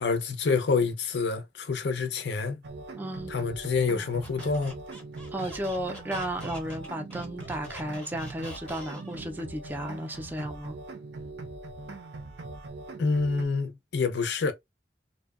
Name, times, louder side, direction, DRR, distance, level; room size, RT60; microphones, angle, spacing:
voice 1, 0.0-2.6 3.3-4.8 13.0-14.5, left 4 dB, 70° left, 0.5 m, -27 dB
sound 1, 2.6-13.5, right 2 dB, 70° right, 0.5 m, -41 dB
voice 2, 3.0-3.3 5.3-10.8, right 1 dB, 10° right, 0.3 m, -34 dB
Squeak, 4.2-9.3, equal, 5° left, 0.7 m, -46 dB
2.6 x 2.0 x 2.3 m
head